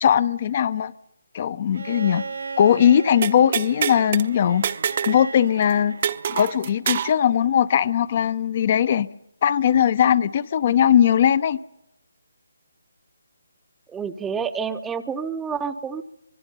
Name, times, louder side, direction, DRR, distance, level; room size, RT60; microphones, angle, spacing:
voice 1, 0.0-0.9 1.3-2.2 2.6-4.7 5.1-6.0 6.3-9.1 9.4-11.6, left 9 dB, 40° left, 15 dB, 0.7 m, -19 dB
Bowed string instrument, 1.7-6.8 8.2-8.3, right 4 dB, 70° right, 1.2 m, -37 dB
sound 1, 3.2-4.3 4.6-5.2 5.5-5.6 6.0-7.2, right 8 dB, 40° right, 1.0 m, -26 dB
voice 2, 13.9-16.0, right 6 dB, 10° right, 13 dB, 0.9 m, -28 dB
25.0 x 21.5 x 5.5 m, 0.86 s
figure-of-eight pair, 150°, 0 cm